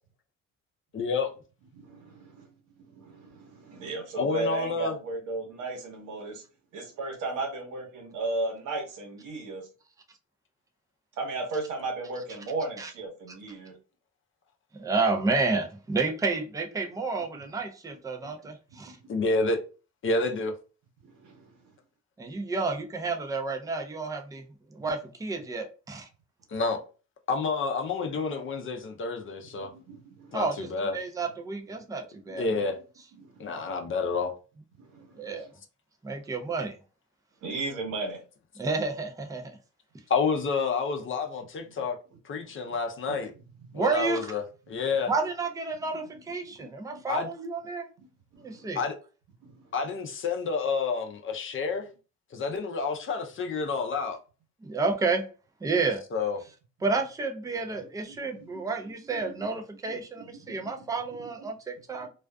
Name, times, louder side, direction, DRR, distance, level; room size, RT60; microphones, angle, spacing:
voice 1, 0.9-1.3 4.2-5.0 19.1-19.6 20.0-20.5 26.5-26.8 27.3-29.7 30.3-30.9 32.4-32.8 33.4-34.3 40.1-42.0 42.2-43.3 43.7-44.4 44.7-45.1 47.1-47.3 48.8-48.9 49.7-51.9 52.3-54.2 56.1-56.4, left 4 dB, 40° left, 0.5 m, -29 dB
voice 2, 1.8-2.4 2.9-6.4 6.7-9.6 11.2-13.7 18.2-18.3 21.2-21.3 29.7-30.4 32.3-32.4 33.2-33.3 34.8-35.4 37.4-38.2 43.1-43.2 43.7-43.8 46.6-47.0 48.0-48.1 48.3-48.7 49.4-49.5 58.1-58.6 60.2-60.8 61.2-61.3 62.0-62.1, right 2 dB, 90° right, 0.9 m, -35 dB
voice 3, 14.7-19.0 22.2-24.4 24.7-26.1 30.3-30.7 30.9-32.6 35.2-35.5 36.0-36.8 38.6-39.6 43.7-44.3 45.1-47.9 48.4-48.8 54.6-55.3 55.6-56.0 56.8-62.1, right 3 dB, 10° right, 0.4 m, -30 dB
2.4 x 2.3 x 2.2 m
cardioid pair, 90°, 30 cm